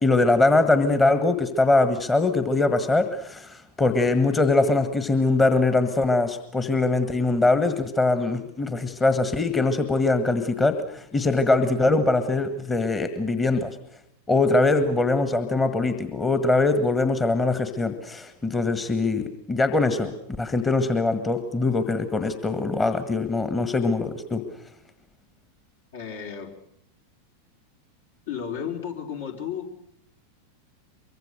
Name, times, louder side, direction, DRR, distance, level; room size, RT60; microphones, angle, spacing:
voice 1, 0.0-13.7 14.3-20.1 20.4-24.4, left 3 dB, 15° left, 9 dB, 1.6 m, -22 dB
voice 2, 25.9-26.6 28.3-29.8, left 8 dB, 60° left, 2 dB, 4.0 m, -33 dB
24.0 x 23.5 x 6.6 m, 0.73 s
figure-of-eight pair, 90°, 0 cm